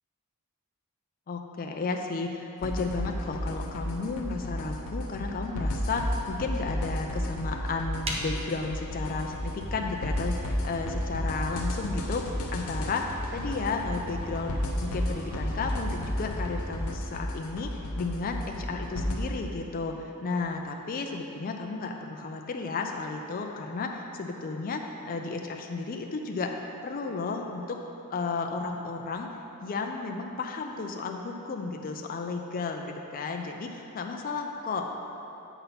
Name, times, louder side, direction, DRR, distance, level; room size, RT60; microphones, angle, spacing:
voice 1, 1.3-27.8 28.1-29.3 29.6-34.9, left 4 dB, 40° left, 3 dB, 0.4 m, -33 dB
sound 1, 2.6-19.2, left 1 dB, 75° left, 0.7 m, -32 dB
sound 2, 8.0-17.2, equal, 30° right, 0.9 m, -42 dB
8.0 x 4.1 x 5.5 m, 2.9 s
head